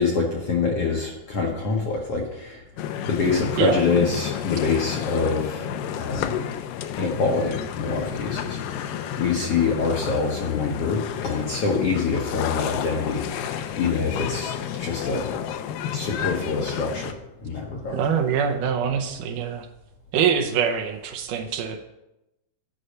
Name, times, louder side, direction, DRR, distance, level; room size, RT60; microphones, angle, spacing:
voice 1, 0.0-2.6 3.0-6.4 7.0-14.5 14.8-15.3 15.9-17.2 17.4-18.0, left 4 dB, 65° left, 0 dB, 1.6 m, -25 dB
sound 1, 2.8-17.1, left 9 dB, 80° left, 2.3 m, -31 dB
voice 2, 17.9-19.7 20.1-21.8, right 7 dB, 75° right, 4 dB, 2.3 m, -24 dB
10.0 x 5.5 x 6.5 m, 0.90 s
omnidirectional pair, 3.9 m